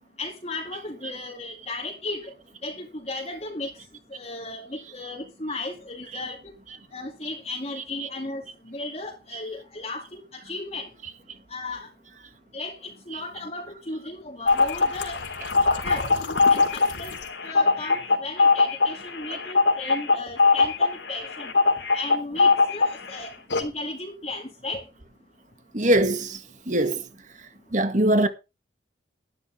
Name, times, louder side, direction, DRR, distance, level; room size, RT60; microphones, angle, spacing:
voice 1, 0.2-2.3 2.6-3.7 4.1-6.4 6.9-10.2 10.4-10.9 11.5-11.9 12.5-12.7 13.1-15.2 15.6-16.1 16.5-17.1 17.4-21.5 21.9-23.3 23.6-24.8, left 2 dB, 35° left, 2.3 m, -35 dB
sound 1, 14.5-23.1 23.5-23.6, left 4 dB, 75° left, 3.5 m, -21 dB
voice 2, 25.7-26.4 26.7-27.0 27.7-28.3, right 1 dB, 40° right, 1.9 m, -22 dB
13.5 x 12.5 x 3.4 m
head